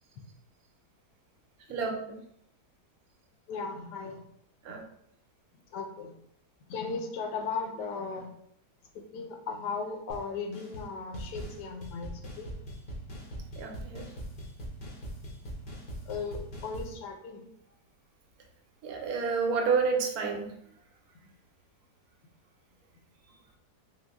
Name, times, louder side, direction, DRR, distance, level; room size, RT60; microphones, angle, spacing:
voice 1, 1.7-2.2 4.6-4.8 13.6-14.0 18.8-20.5, right 5 dB, 70° right, 2 dB, 1.0 m, -29 dB
voice 2, 3.5-4.2 4.7-4.8 5.7-6.1 6.7-8.3 9.1-12.5 16.1-17.4, left 5 dB, 85° left, 5 dB, 1.2 m, -37 dB
sound 1, 10.1-10.2 10.5-10.9 11.1-16.9, equal, 55° left, 0.5 m, -41 dB
3.7 x 2.0 x 3.4 m, 0.72 s
omnidirectional pair, 1.7 m